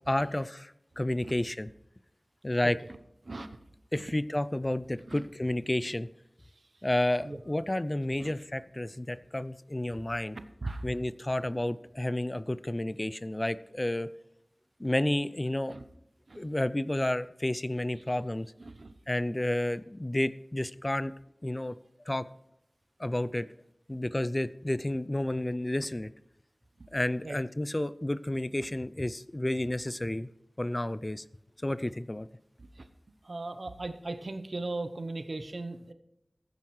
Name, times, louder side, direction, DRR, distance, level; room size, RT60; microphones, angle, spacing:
voice 1, 0.1-1.7 2.4-2.8 3.9-6.1 6.8-10.4 10.8-14.1 14.8-15.8 16.3-18.5 19.1-21.1 21.4-21.7 22.1-22.3 23.0-23.5 23.9-26.1 26.9-30.3 30.6-31.2 31.6-32.3, left 1 dB, 25° left, 15 dB, 0.4 m, -31 dB
voice 2, 18.6-18.9 23.1-23.2 26.8-26.9 27.2-27.4 32.6-32.9 33.2-35.9, right 2 dB, 70° right, 9 dB, 0.8 m, -38 dB
15.0 x 9.3 x 3.2 m, 0.82 s
wide cardioid pair, 65°, 0 cm